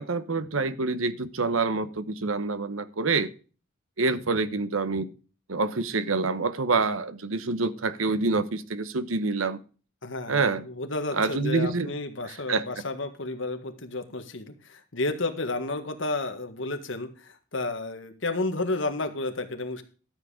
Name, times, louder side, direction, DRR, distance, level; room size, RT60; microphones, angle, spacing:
voice 1, 0.0-3.3 4.0-5.1 5.5-9.6 10.3-10.7 11.1-11.9 12.3-12.6, right 3 dB, 90° right, 1.0 m, -27 dB
voice 2, 10.0-19.8, left 2 dB, 70° left, 1.7 m, -32 dB
13.0 x 7.4 x 4.9 m
head